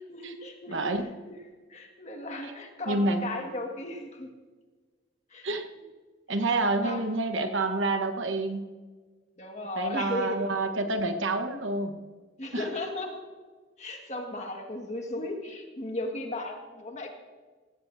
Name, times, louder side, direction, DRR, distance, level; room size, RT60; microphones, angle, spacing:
voice 1, 0.1-0.9 1.7-4.3 5.3-5.5 6.8-7.0 9.4-10.4 12.4-13.2 13.8-17.1, left 2 dB, 35° left, 2 dB, 1.8 m, -35 dB
voice 2, 0.7-1.1 2.4-2.5 2.9-3.2 5.4-5.6 6.3-8.7 9.8-11.9 12.5-12.7, right 2 dB, 75° right, 7 dB, 1.2 m, -28 dB
18.0 x 16.0 x 2.7 m, 1.4 s
head